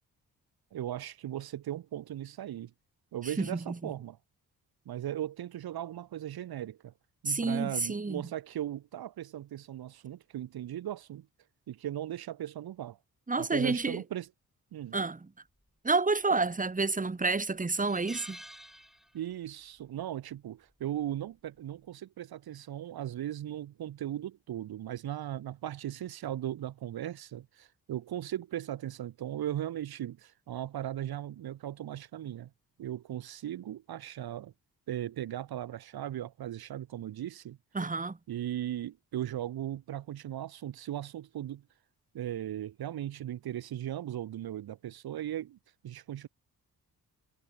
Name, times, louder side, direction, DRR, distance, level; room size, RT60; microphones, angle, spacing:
voice 1, 0.7-2.7 3.1-4.2 4.9-6.9 7.2-11.3 11.7-13.0 13.4-14.3 14.7-15.0 19.1-32.5 32.8-34.5 34.9-37.6 38.3-41.6 42.1-45.6 45.8-46.3, right 12 dB, 80° right, 1.8 m, -37 dB
voice 2, 7.3-8.2 13.3-14.0 14.9-15.3 15.8-18.4 37.7-38.2, right 3 dB, 20° right, 2.5 m, -29 dB
sound 1, 16.3-16.8 17.2-17.3 17.7-19.5 19.8-20.0 21.3-21.6, equal, ahead, 5.3 m, -49 dB
cardioid pair, 95°, 37 cm